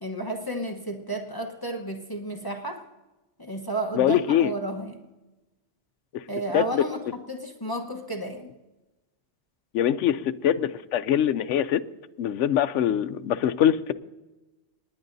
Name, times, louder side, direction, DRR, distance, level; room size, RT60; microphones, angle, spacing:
voice 1, 0.0-2.8 3.4-5.0 6.3-8.5, right 1 dB, 20° left, 1.1 m, -32 dB
voice 2, 3.9-4.5 6.5-6.8 9.7-11.8 12.2-13.9, left 10 dB, 80° left, 0.9 m, -23 dB
28.5 x 10.5 x 2.7 m
omnidirectional pair, 1.2 m